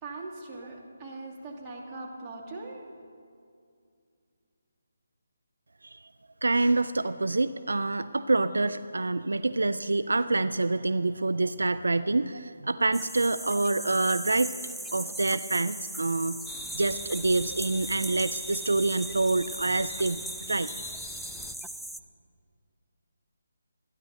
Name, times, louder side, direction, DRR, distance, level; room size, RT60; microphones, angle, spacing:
voice 1, 0.0-2.8, right 2 dB, 20° right, -4 dB, 2.8 m, -40 dB
voice 2, 6.4-14.5 14.9-16.4 16.7-20.2 20.5-21.0, right 2 dB, 75° right, 12 dB, 0.5 m, -26 dB
sound 1, 12.9-22.0, right 1 dB, ahead, 0.4 m, -39 dB
sound 2, 16.5-21.6, left 2 dB, 15° left, 0.8 m, -42 dB
28.5 x 10.5 x 4.2 m, 2.3 s
figure-of-eight pair, 150°, 0 cm